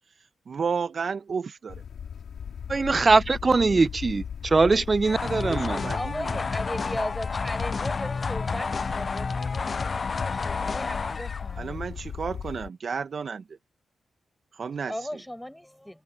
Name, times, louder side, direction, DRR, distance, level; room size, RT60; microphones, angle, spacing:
voice 1, 0.5-1.7 5.4-6.0 11.6-13.4 14.5-14.9, right 5 dB, 60° right, 0.8 m, -32 dB
sound 1, 1.7-12.7, left 7 dB, 75° left, 2.5 m, -37 dB
voice 2, 2.7-5.9, right 3 dB, 45° right, 0.4 m, -22 dB
sound 2, 5.0-11.6, left 4 dB, 50° left, 0.3 m, -30 dB
voice 3, 5.6-12.1 14.7-16.0, equal, 5° left, 7.1 m, -37 dB
supercardioid pair, 45°, 0 cm